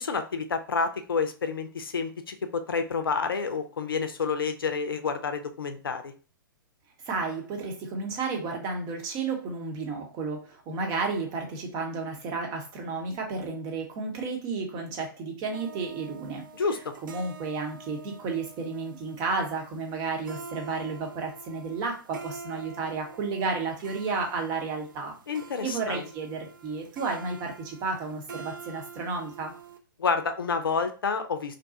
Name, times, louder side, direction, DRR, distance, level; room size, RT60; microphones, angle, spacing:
voice 1, 0.0-6.1 16.5-16.8 25.3-26.1 30.0-31.6, left 5 dB, 75° left, 7 dB, 0.5 m, -29 dB
voice 2, 7.0-16.4 17.0-25.2 25.6-29.5, right 4 dB, 30° right, 2 dB, 0.8 m, -32 dB
sound 1, 15.5-29.8, right 5 dB, 65° right, 0.4 m, -46 dB
2.6 x 2.2 x 2.6 m, 0.35 s
figure-of-eight pair, 115°, 12 cm